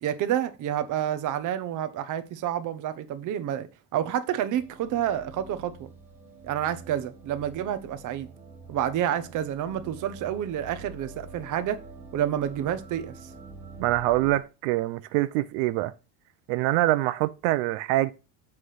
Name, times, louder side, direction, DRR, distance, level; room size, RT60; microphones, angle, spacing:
voice 1, 0.0-3.7 3.9-5.9 6.4-8.3 8.7-11.8 12.1-13.1, right 10 dB, 45° right, 0.9 m, -29 dB
sound 1, 4.6-14.4, right 3 dB, 5° right, 1.2 m, -46 dB
voice 2, 13.8-15.9 16.5-18.1, right 16 dB, 85° right, 0.6 m, -25 dB
7.5 x 3.3 x 5.8 m
cardioid pair, 145°, 43 cm